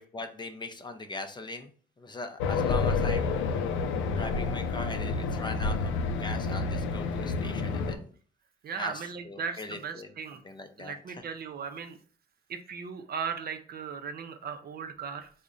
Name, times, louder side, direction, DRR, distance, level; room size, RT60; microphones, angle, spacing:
voice 1, 0.0-1.7 2.0-3.3 4.1-8.1 8.7-11.2, left 2 dB, 20° left, 7 dB, 0.5 m, -40 dB
Race car auto racing, 2.4-8.0, left 4 dB, 90° left, 0.4 m, -29 dB
voice 2, 8.6-10.4 10.8-12.0 12.5-15.3, right 6 dB, 50° right, 7 dB, 0.5 m, -37 dB
3.6 x 2.1 x 3.7 m, 0.44 s
cardioid pair, 90°, 20 cm